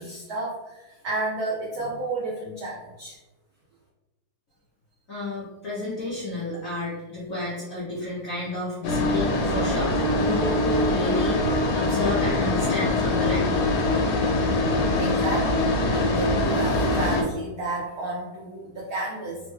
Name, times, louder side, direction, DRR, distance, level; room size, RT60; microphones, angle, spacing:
voice 1, 0.0-3.2 15.0-19.4, right 2 dB, 80° right, -4 dB, 0.8 m, -32 dB
voice 2, 5.1-13.6, left 2 dB, 65° left, -8 dB, 0.8 m, -31 dB
sound 1, 8.8-17.2, left 2 dB, 80° left, 1.4 m, -23 dB
3.4 x 2.1 x 3.1 m, 1.1 s
omnidirectional pair, 2.3 m